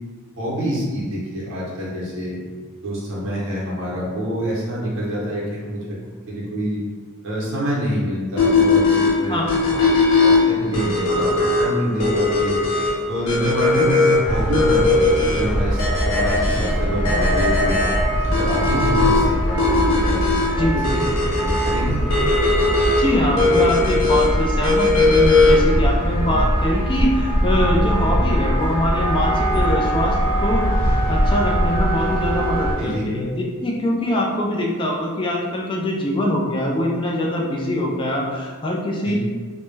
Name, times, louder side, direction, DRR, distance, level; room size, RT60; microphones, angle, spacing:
voice 1, 0.3-2.4 2.8-6.0 6.3-6.8 7.2-9.8 10.2-12.6 13.1-17.8 18.3-21.1 21.3-22.1 26.2-26.4 32.8-33.1 39.0-39.1, equal, 55° right, -6 dB, 0.7 m, -26 dB
sound 1, 8.4-25.8, left 3 dB, 75° left, 0.5 m, -19 dB
sound 2, 14.2-32.7, equal, 45° left, 0.9 m, -22 dB
voice 2, 20.6-21.1 23.0-39.1, left 1 dB, 20° left, -2 dB, 0.3 m, -23 dB
Wind instrument woodwind instrument, 28.9-32.8, right 2 dB, 20° right, 0.9 m, -27 dB
2.2 x 2.0 x 3.1 m, 1.5 s
head